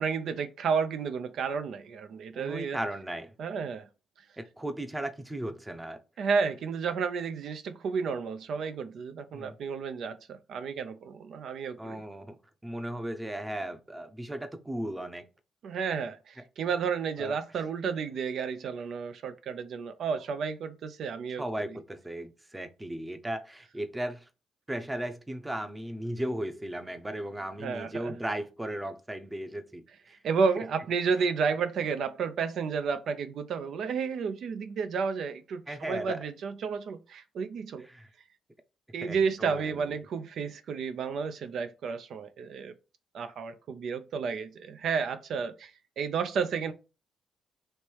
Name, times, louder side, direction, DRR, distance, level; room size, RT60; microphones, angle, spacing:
voice 1, 0.0-2.8 3.4-3.9 6.2-12.0 15.6-21.4 27.6-28.1 30.2-37.9 38.9-42.7 43.1-45.7 46.0-46.7, right 5 dB, 65° right, 0.4 m, -31 dB
voice 2, 2.3-3.3 4.4-6.0 9.3-9.6 11.8-12.4 12.6-15.3 17.2-17.4 21.4-24.3 24.7-30.2 35.7-36.2 37.8-38.1 39.0-39.8, right 1 dB, 10° right, 0.6 m, -36 dB
3.2 x 3.1 x 4.5 m
cardioid pair, 90°, 0 cm